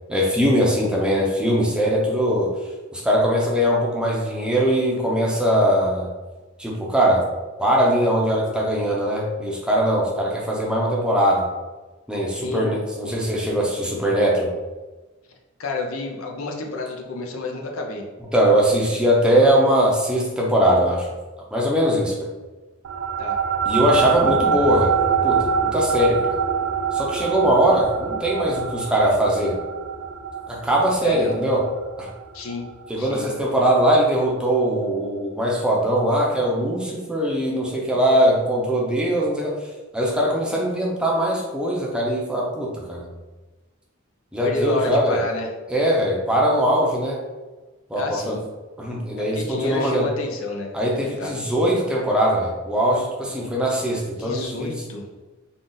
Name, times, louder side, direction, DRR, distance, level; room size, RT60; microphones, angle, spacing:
voice 1, 0.1-2.5 2.9-6.1 6.6-7.2 7.6-11.5 12.1-14.5 18.3-21.1 21.5-22.3 23.7-24.9 25.2-26.2 26.9-29.6 30.5-31.6 32.0-32.1 32.9-39.6 39.9-43.1 44.3-45.2 45.7-47.2 47.9-48.4 48.8-50.1 50.7-54.8, equal, 5° right, -3 dB, 0.6 m, -21 dB
voice 2, 15.6-18.0 23.2-23.4 31.0-31.4 32.3-32.7 33.0-33.3 44.4-45.5 47.9-48.4 49.2-50.8 51.0-51.4 54.2-55.1, left 2 dB, 75° left, 2 dB, 0.6 m, -29 dB
sound 1, 22.8-33.6, right 7 dB, 80° right, 0.4 m, -25 dB
3.8 x 2.4 x 3.9 m, 1.2 s
head